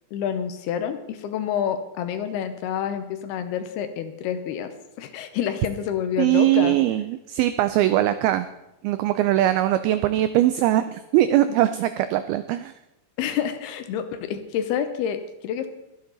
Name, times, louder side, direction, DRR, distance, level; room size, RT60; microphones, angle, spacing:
voice 1, 0.1-6.8 13.2-15.7, left 8 dB, 75° left, 9 dB, 2.6 m, -28 dB
voice 2, 6.2-8.5 8.8-12.7, right 13 dB, 90° right, 11 dB, 2.1 m, -21 dB
23.5 x 8.1 x 3.9 m, 0.91 s
omnidirectional pair, 5.0 m